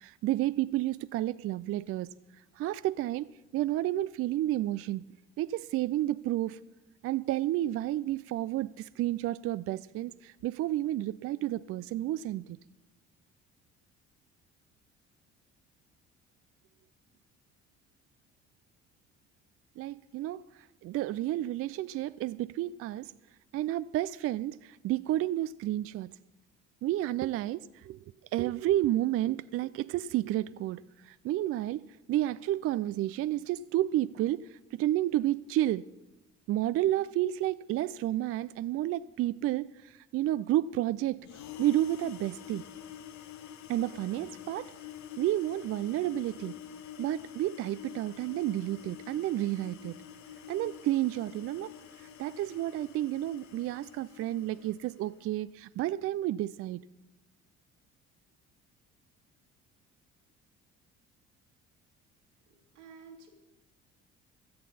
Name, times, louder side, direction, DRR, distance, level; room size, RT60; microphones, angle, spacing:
voice 1, 0.0-2.1 2.6-3.3 3.5-5.0 5.4-6.6 7.0-12.6 19.8-20.4 20.8-23.1 23.5-26.1 26.8-28.0 28.3-35.8 36.5-41.3 41.6-42.6 43.7-44.7 45.2-46.5 47.0-50.0 50.5-51.7 52.2-56.8, right 14 dB, 40° right, 0.4 m, -31 dB
sound 1, 41.2-55.2, left 9 dB, 50° left, 1.1 m, -47 dB
voice 2, 62.5-63.3, right 5 dB, 80° right, 2.5 m, -52 dB
16.5 x 13.0 x 4.2 m
figure-of-eight pair, 50°, 35 cm